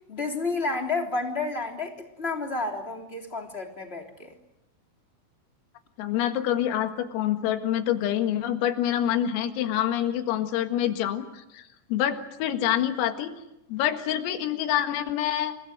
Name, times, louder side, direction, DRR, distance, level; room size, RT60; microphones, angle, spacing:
voice 1, 0.1-4.3, left 3 dB, 15° left, 3 dB, 2.6 m, -30 dB
voice 2, 6.0-13.3 13.7-15.5, left 11 dB, 90° left, 7 dB, 4.4 m, -26 dB
28.5 x 21.0 x 7.9 m, 0.90 s
omnidirectional pair, 5.9 m